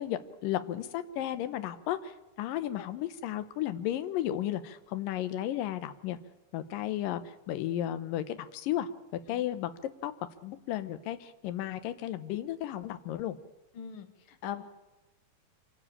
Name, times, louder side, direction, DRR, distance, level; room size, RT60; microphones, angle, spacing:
voice 1, 0.0-6.2 6.5-8.9 9.3-9.7 10.0-10.1 10.4-13.4, left 12 dB, 75° left, 11 dB, 2.6 m, -34 dB
voice 2, 13.7-14.6, left 9 dB, 50° left, 8 dB, 1.7 m, -41 dB
26.0 x 12.5 x 8.6 m, 1.0 s
omnidirectional pair, 4.2 m